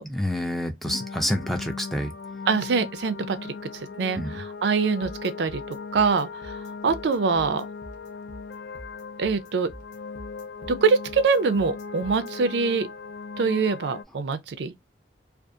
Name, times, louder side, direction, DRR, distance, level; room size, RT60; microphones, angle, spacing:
voice 1, 0.1-2.1 4.2-4.4, equal, ahead, 0.4 m, -28 dB
sound 1, 0.8-14.0, left 5 dB, 70° left, 0.3 m, -38 dB
voice 2, 2.5-7.6 9.2-9.7 10.7-12.9 13.4-14.7, right 4 dB, 75° right, 0.4 m, -24 dB
sound 2, 5.0-12.3, equal, 40° left, 0.8 m, -45 dB
2.4 x 2.3 x 2.6 m
head